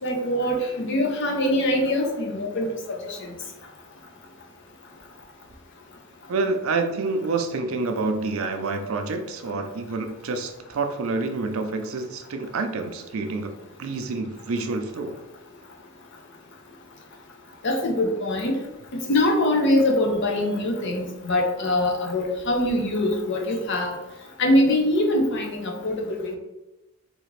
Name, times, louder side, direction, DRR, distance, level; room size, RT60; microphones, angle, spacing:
voice 1, 0.0-2.7 3.0-3.3 17.6-18.6 19.1-23.9 24.4-26.4, left 1 dB, 55° left, 2 dB, 0.6 m, -23 dB
voice 2, 6.3-13.5 13.8-15.2, right 3 dB, 70° right, 6 dB, 0.4 m, -28 dB
3.6 x 2.4 x 3.2 m, 0.97 s
head